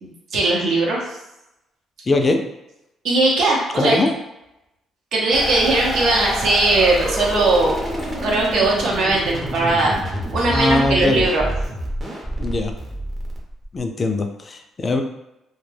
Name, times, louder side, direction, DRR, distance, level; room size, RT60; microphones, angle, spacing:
voice 1, 0.0-1.0 3.0-4.0 5.1-7.7 8.2-10.0 10.3-11.5, right 2 dB, 70° right, -2 dB, 0.7 m, -19 dB
voice 2, 2.1-2.4 3.7-4.1 10.5-11.3 12.4-12.7 13.7-15.0, left 2 dB, 35° left, 5 dB, 0.3 m, -21 dB
sound 1, 5.3-13.8, equal, 30° right, 0.7 m, -27 dB
2.2 x 2.1 x 3.2 m, 0.90 s
cardioid pair, 95°, 0 cm